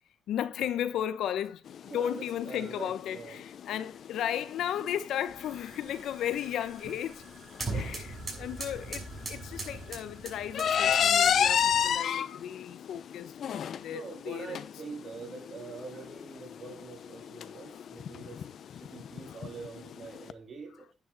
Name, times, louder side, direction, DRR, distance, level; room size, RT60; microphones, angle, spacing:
voice 1, 0.3-1.6 1.9-7.2 7.7-14.7 19.3-19.4 20.7-20.9, left 10 dB, 75° left, 1.1 m, -35 dB
sound 1, 1.7-20.3, left 8 dB, 60° left, 0.8 m, -32 dB
voice 2, 1.9-3.4 7.7-8.0 11.8-12.0 13.9-18.4 18.7-20.9, right 4 dB, 45° right, 3.8 m, -44 dB
sound 2, 5.3-12.0, right 3 dB, 25° right, 6.2 m, -41 dB
10.5 x 9.5 x 4.2 m
cardioid pair, 90°, 0 cm